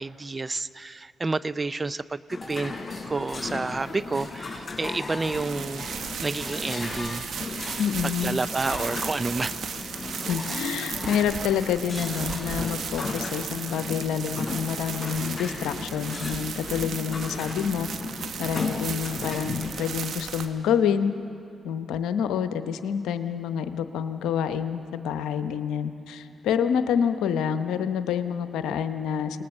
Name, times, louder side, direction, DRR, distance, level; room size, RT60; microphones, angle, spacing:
voice 1, 0.0-2.7 3.1-5.9 6.2-7.2 8.0-9.6, right 3 dB, 30° right, 15 dB, 0.6 m, -29 dB
sound 1, 2.3-19.8, left 4 dB, 45° left, 6.0 m, -37 dB
sound 2, 2.4-3.7 4.1-13.5, left 2 dB, 20° left, 4.3 m, -42 dB
sound 3, 2.5-20.5, right 6 dB, 65° right, 1.4 m, -36 dB
voice 2, 7.8-8.4 10.3-17.9 18.4-21.2 21.6-29.4, left 8 dB, 80° left, 10 dB, 0.9 m, -27 dB
29.0 x 19.5 x 6.7 m, 2.7 s
hypercardioid pair, 45°, 0 cm